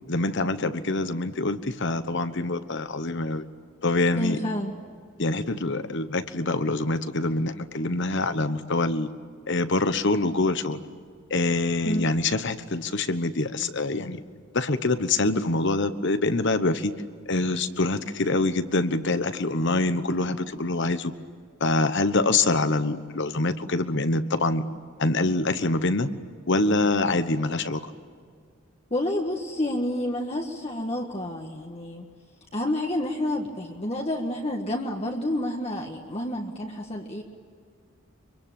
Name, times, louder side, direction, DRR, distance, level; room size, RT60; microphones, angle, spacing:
voice 1, 0.1-3.4 3.8-4.4 5.2-9.1 9.5-10.8 11.3-14.2 14.5-16.9 17.3-21.1 21.6-24.6 25.0-26.1 26.5-27.8, left 2 dB, 55° left, 11 dB, 1.2 m, -25 dB
voice 2, 4.1-4.7 11.8-12.0 28.9-32.1 32.5-37.2, left 1 dB, 30° left, 1 dB, 1.6 m, -29 dB
25.0 x 24.0 x 8.9 m, 2.1 s
head